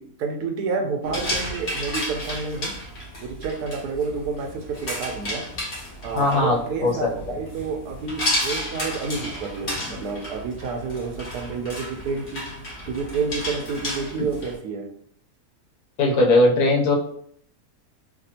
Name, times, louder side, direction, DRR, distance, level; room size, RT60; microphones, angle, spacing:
voice 1, 0.0-2.7 3.2-5.5 6.0-12.4 12.9-14.8, right 4 dB, 75° right, 3 dB, 1.1 m, -29 dB
sound 1, 1.0-14.5, left 1 dB, 50° left, 1.4 m, -32 dB
voice 2, 6.1-7.4 16.0-17.0, left 2 dB, 80° left, -1 dB, 1.2 m, -19 dB
3.3 x 2.2 x 2.7 m, 0.65 s
omnidirectional pair, 1.7 m